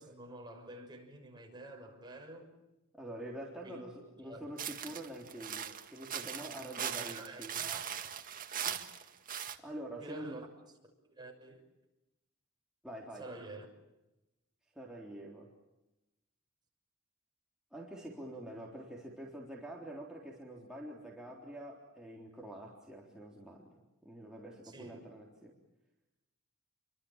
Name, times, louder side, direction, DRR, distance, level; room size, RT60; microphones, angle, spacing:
voice 1, 0.0-2.5 3.6-3.8 4.2-4.5 6.8-8.1 10.0-10.5 11.2-11.6 13.1-13.7 24.6-25.0, right 2 dB, 20° right, 6.3 m, -49 dB
voice 2, 2.9-7.7 8.6-8.8 9.6-10.4 12.8-13.3 14.8-15.5 17.7-23.7 24.0-25.6, right 1 dB, 5° right, 3.7 m, -46 dB
sound 1, 4.6-9.6, right 8 dB, 40° right, 1.9 m, -40 dB
29.5 x 24.0 x 7.3 m
head